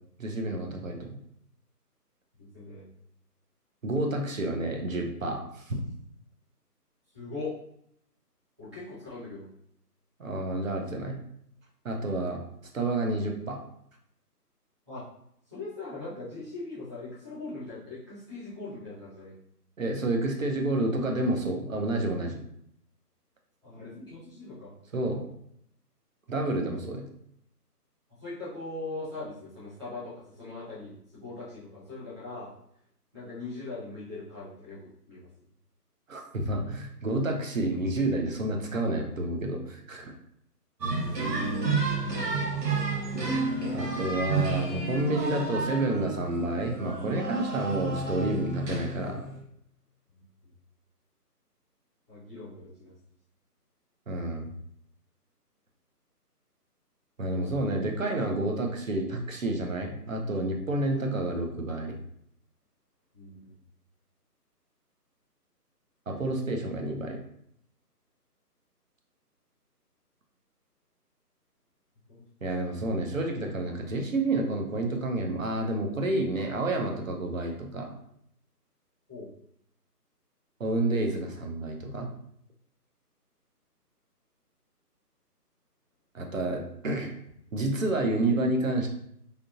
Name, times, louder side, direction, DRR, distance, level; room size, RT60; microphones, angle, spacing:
voice 1, 0.2-1.2 3.8-5.7 10.2-11.2 11.8-12.4 12.7-13.6 19.8-22.4 24.9-25.3 26.3-27.0 36.1-40.1 43.7-49.2 54.1-54.5 57.2-62.0 66.1-67.2 72.4-77.9 80.6-82.1 86.1-87.1 87.5-88.9, right 2 dB, 55° right, 2 dB, 0.6 m, -29 dB
voice 2, 2.5-2.9 7.1-7.5 8.6-9.5 14.9-15.0 15.5-19.3 23.6-24.7 28.2-32.5 33.1-35.3 52.1-52.9 63.1-63.5 79.1-79.3, left 3 dB, 20° right, -14 dB, 1.0 m, -40 dB
sound 1, 40.8-49.4, right 3 dB, 85° right, 1.3 m, -30 dB
3.4 x 2.7 x 2.4 m, 0.71 s
hypercardioid pair, 175°, 48 cm